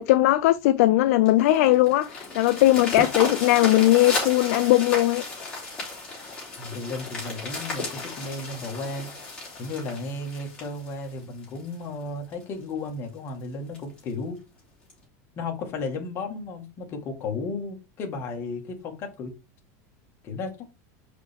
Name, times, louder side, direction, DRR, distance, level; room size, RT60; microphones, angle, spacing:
voice 1, 0.0-5.2, left 16 dB, 70° left, 0.4 m, -19 dB
sound 1, 1.3-11.7 12.3-12.4 12.8-12.9 13.3-13.4 13.7-14.0 14.9-15.0, left 3 dB, 10° left, 3.4 m, -34 dB
voice 2, 6.6-9.1 9.6-14.4 15.4-19.3 20.2-20.7, left 3 dB, 30° left, 1.6 m, -34 dB
5.6 x 5.0 x 3.4 m
supercardioid pair, 165°, 8 cm